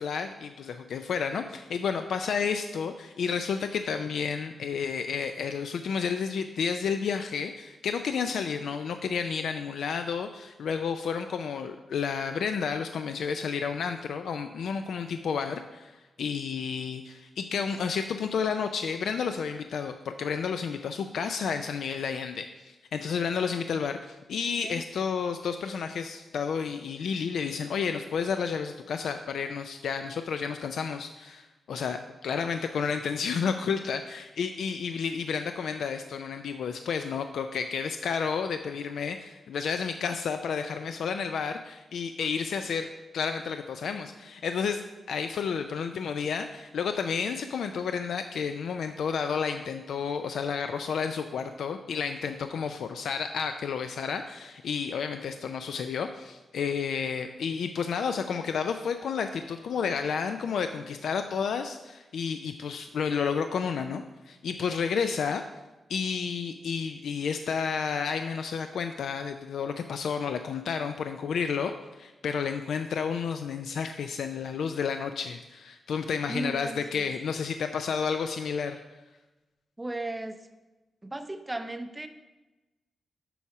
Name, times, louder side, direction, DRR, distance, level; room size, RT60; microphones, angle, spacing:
voice 1, 0.0-44.8 45.1-65.4 65.9-78.8, left 6 dB, 80° left, 7 dB, 0.4 m, -31 dB
voice 2, 76.3-77.1 79.8-80.4 81.0-82.1, right 2 dB, 10° right, 8 dB, 0.4 m, -35 dB
7.0 x 4.8 x 5.8 m, 1.1 s
wide cardioid pair, 175°, 0 cm